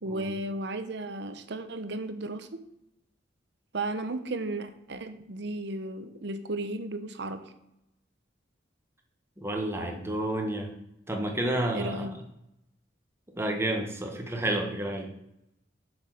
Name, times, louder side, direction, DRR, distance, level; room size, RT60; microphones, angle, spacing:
voice 1, 0.0-2.6 3.7-7.4 11.7-12.1, right 2 dB, 60° right, 10 dB, 0.9 m, -34 dB
voice 2, 9.4-10.7 11.1-12.2 13.4-15.1, right 1 dB, 15° right, 2 dB, 1.3 m, -30 dB
6.8 x 6.4 x 6.4 m, 0.83 s
head